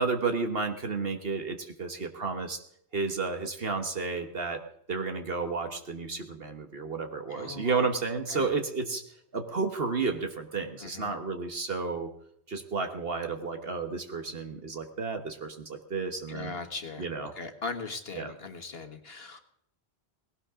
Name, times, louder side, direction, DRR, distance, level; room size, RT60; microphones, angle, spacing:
voice 1, 0.0-2.6 2.9-4.6 4.9-9.0 9.3-12.1 12.5-16.5 17.0-17.3 18.2-18.3, right 4 dB, 65° right, 6 dB, 1.5 m, -32 dB
voice 2, 7.3-7.9 8.3-8.5 10.8-11.1 16.3-19.4, left 4 dB, 65° left, 6 dB, 1.6 m, -39 dB
19.0 x 17.0 x 3.7 m, 0.71 s
omnidirectional pair, 1.1 m